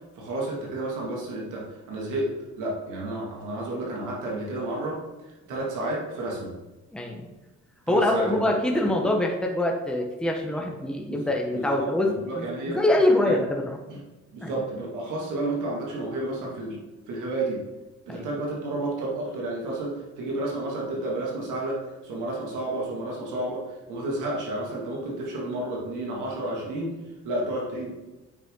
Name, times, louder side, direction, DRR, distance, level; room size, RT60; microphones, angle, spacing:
voice 1, 0.2-2.3 2.6-5.0 5.5-6.5 7.9-8.9 10.5-10.7 11.0-12.8 13.2-13.4 13.9-14.0 14.3-16.8 17.1-17.6 18.1-26.9 27.2-27.9, right 2 dB, 85° right, -3 dB, 2.2 m, -31 dB
voice 2, 6.9-7.3 7.9-12.1 12.3-13.8 14.4-14.5 18.1-18.3, left 1 dB, 5° left, 1 dB, 1.0 m, -24 dB
8.3 x 5.1 x 3.8 m, 1.1 s
cardioid pair, 90°, 30 cm